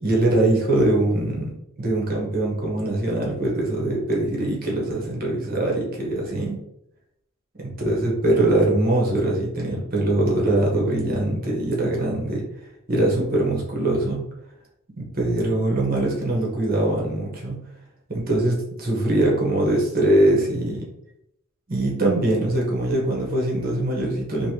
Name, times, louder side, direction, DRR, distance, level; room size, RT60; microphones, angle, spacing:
voice 1, 0.0-6.6 7.6-12.4 12.9-14.2 15.0-17.6 18.1-20.8 21.7-24.5, right 1 dB, 45° right, -2 dB, 1.0 m, -22 dB
3.2 x 2.6 x 2.8 m, 0.79 s
head